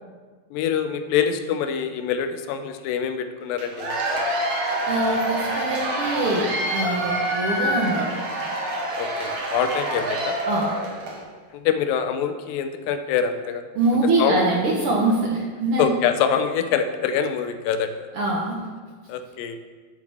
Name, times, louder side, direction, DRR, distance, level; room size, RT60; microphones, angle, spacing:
voice 1, 0.5-4.3 8.9-10.4 11.5-13.6 14.2-14.4 15.8-18.1 19.1-19.6, left 8 dB, 80° left, 8 dB, 2.3 m, -25 dB
Cheering / Applause / Crowd, 3.6-11.2, right 1 dB, 55° right, 2.0 m, -26 dB
voice 2, 4.9-8.2 10.5-10.7 13.7-15.8 18.1-18.6, right 2 dB, 70° right, -2 dB, 1.3 m, -23 dB
10.5 x 8.5 x 3.5 m, 1.4 s
omnidirectional pair, 4.1 m